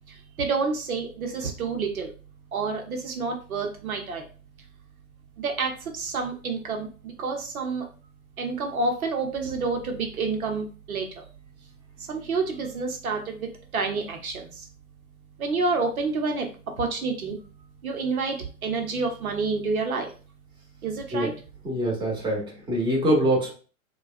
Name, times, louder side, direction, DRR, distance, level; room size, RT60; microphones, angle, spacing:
voice 1, 0.1-2.1 2.5-4.2 5.4-7.8 8.4-11.2 12.0-14.7 15.4-16.5 16.8-17.4 17.8-20.1 20.8-21.3, right 4 dB, 75° right, 3 dB, 0.9 m, -29 dB
voice 2, 21.6-23.5, right 1 dB, 10° right, -2 dB, 1.1 m, -24 dB
4.6 x 2.4 x 2.5 m, 0.37 s
figure-of-eight pair, 100°, 43 cm